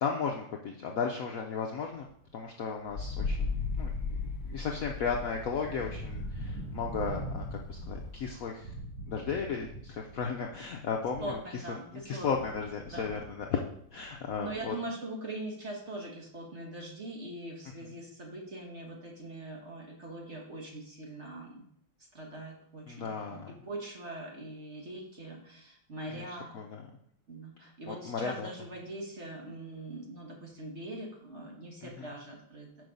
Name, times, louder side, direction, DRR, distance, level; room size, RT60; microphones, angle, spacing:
voice 1, 0.0-2.1 2.3-8.7 9.1-11.4 11.7-11.8 12.0-13.6 13.9-14.8 22.9-23.5 26.1-26.8 27.9-28.5 32.0-32.1, left 6 dB, 85° left, 2 dB, 0.7 m, -35 dB
sound 1, 2.0-2.3 2.7-11.5 11.9-14.7, right 2 dB, 70° right, 2.6 m, -44 dB
Wind, 2.9-8.4, left 4 dB, 50° left, 1.0 m, -37 dB
voice 2, 11.2-12.5 12.9-13.1 14.4-21.7 22.1-26.5 27.3-32.7, right 2 dB, 35° right, -1 dB, 1.5 m, -42 dB
6.2 x 5.4 x 5.2 m, 0.68 s
omnidirectional pair, 2.3 m